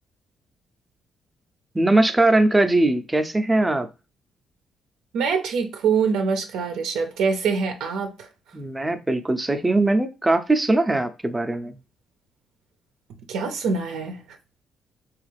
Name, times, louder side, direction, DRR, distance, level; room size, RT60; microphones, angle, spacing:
voice 1, 1.7-3.9 8.5-11.7, right 2 dB, 15° right, 0.5 m, -20 dB
voice 2, 5.1-8.3 13.3-14.2, right 5 dB, 90° right, 0.5 m, -24 dB
3.4 x 2.4 x 3.2 m
cardioid pair, 90°, 0 cm